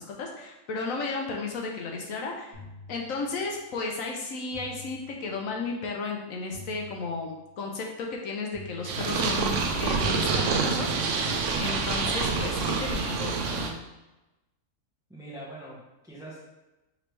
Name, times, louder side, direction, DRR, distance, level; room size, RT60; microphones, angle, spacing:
voice 1, 0.0-2.6 2.9-11.2 11.6-13.4, left 4 dB, 70° left, 1 dB, 1.0 m, -34 dB
sound 1, 2.5-3.7 4.5-5.7 6.5-7.7 8.5-9.7 10.5-11.7, left 2 dB, 45° left, 1.8 m, -48 dB
Purr, 8.8-13.7, right 4 dB, 65° right, 0.8 m, -27 dB
voice 2, 15.1-16.4, right 1 dB, 5° right, -5 dB, 0.6 m, -43 dB
5.1 x 3.2 x 3.2 m, 1.0 s
omnidirectional pair, 1.6 m